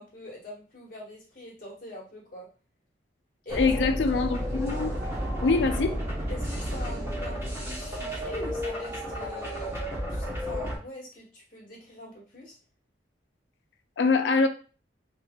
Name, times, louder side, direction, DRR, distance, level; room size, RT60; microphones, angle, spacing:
voice 1, 0.0-2.5 3.4-3.7 6.3-9.7 10.1-12.5, left 1 dB, 45° left, 1.3 m, -43 dB
voice 2, 3.5-4.9 5.4-6.0 14.0-14.5, left 4 dB, 75° left, 0.4 m, -24 dB
sound 1, 3.5-10.8, equal, 15° right, 0.8 m, -32 dB
3.1 x 2.7 x 2.2 m
head